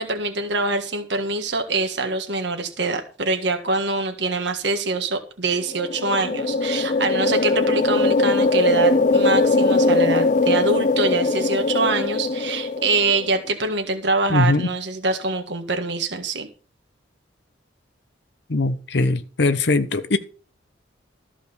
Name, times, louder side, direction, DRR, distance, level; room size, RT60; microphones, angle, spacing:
voice 1, 0.0-16.5, right 3 dB, 70° right, 1.6 m, -24 dB
sound 1, 5.6-13.3, left 3 dB, 40° left, 0.5 m, -20 dB
voice 2, 14.3-14.7 18.5-20.2, left 2 dB, 65° left, 0.9 m, -20 dB
14.0 x 5.0 x 6.9 m
head